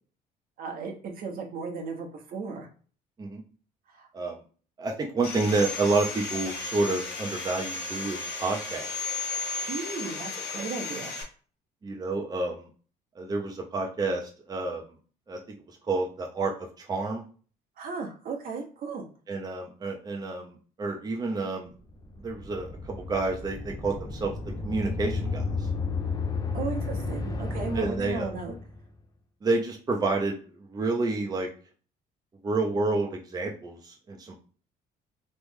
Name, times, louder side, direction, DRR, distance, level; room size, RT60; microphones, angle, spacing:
voice 1, 0.6-2.7 3.9-4.1 9.7-11.1 17.8-19.0 26.5-28.5, right 4 dB, 60° right, 3 dB, 1.0 m, -35 dB
voice 2, 4.8-8.9 11.8-12.7 13.2-14.8 15.3-15.4 15.9-17.2 19.3-21.7 22.2-24.3 24.6-25.7 27.7-28.3 29.4-31.5 32.4-34.4, right 3 dB, 25° right, 1 dB, 0.7 m, -29 dB
Sawing, 5.2-11.2, left 3 dB, 75° left, 1.3 m, -34 dB
sound 1, 21.9-28.8, left 3 dB, 20° left, 0.6 m, -32 dB
3.1 x 2.5 x 3.6 m, 0.40 s
cardioid pair, 110°, 17 cm